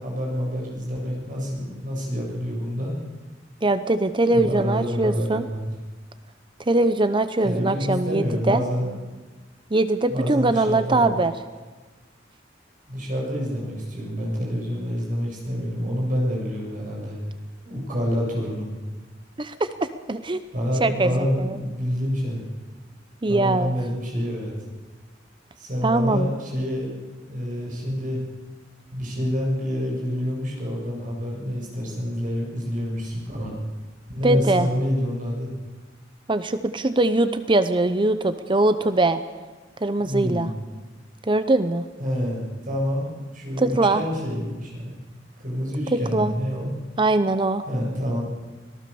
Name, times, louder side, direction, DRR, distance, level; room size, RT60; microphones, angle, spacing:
voice 1, 0.0-2.9 4.3-5.6 7.4-8.9 10.1-11.2 12.9-17.2 17.6-18.7 20.5-22.4 23.3-24.5 25.6-26.9 27.2-28.2 28.9-33.5 34.1-35.5 40.0-40.5 42.0-44.9 45.4-46.7 47.7-48.2, equal, 45° right, -2 dB, 7.4 m, -27 dB
voice 2, 3.6-5.5 6.7-8.6 9.7-11.3 19.4-20.4 20.8-21.6 23.2-23.7 25.8-26.3 34.2-34.7 36.3-39.2 39.8-40.5 41.3-41.9 43.6-44.0 45.9-46.3 47.0-47.7, right 2 dB, 25° right, 11 dB, 0.7 m, -22 dB
25.5 x 18.5 x 7.0 m, 1.3 s
head